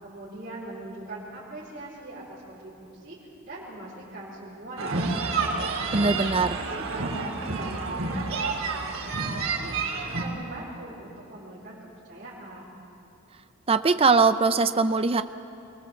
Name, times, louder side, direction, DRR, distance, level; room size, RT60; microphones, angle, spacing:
voice 1, 0.0-3.2 3.4-5.6 6.0-11.8 12.0-12.8, right 1 dB, 45° right, -8 dB, 4.2 m, -41 dB
sound 1, 4.8-10.2, right 3 dB, 80° right, 3.3 m, -29 dB
voice 2, 5.9-6.6 13.7-15.2, right 4 dB, 25° right, 10 dB, 0.5 m, -21 dB
23.0 x 19.5 x 7.1 m, 2.7 s
head